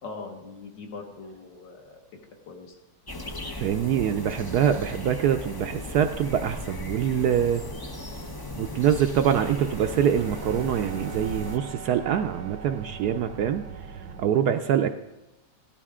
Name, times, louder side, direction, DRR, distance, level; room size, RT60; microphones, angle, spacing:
voice 1, 0.0-2.2 2.5-2.8 14.3-14.5, left 4 dB, 70° left, 2 dB, 2.3 m, -42 dB
sound 1, 3.1-11.6, left 1 dB, 35° left, 0.3 m, -37 dB
voice 2, 3.6-7.6 8.6-13.6 14.2-14.9, right 9 dB, 70° right, 7 dB, 1.0 m, -24 dB
sound 2, 9.3-14.3, right 6 dB, 90° right, 1.7 m, -41 dB
16.5 x 12.0 x 3.7 m, 1.0 s
omnidirectional pair, 2.1 m